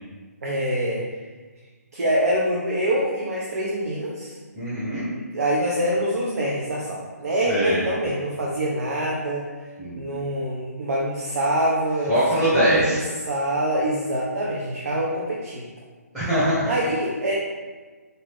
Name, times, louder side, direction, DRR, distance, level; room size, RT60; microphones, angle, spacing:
voice 1, 0.4-1.0 1.9-4.4 5.1-9.5 9.9-15.6 16.7-17.3, right 1 dB, 65° right, -4 dB, 0.6 m, -25 dB
voice 2, 4.5-5.1 7.5-7.8 9.8-10.1 12.1-13.0 16.1-16.7, right 1 dB, ahead, -15 dB, 0.8 m, -22 dB
2.7 x 2.6 x 3.5 m, 1.4 s
figure-of-eight pair, 145°, 9 cm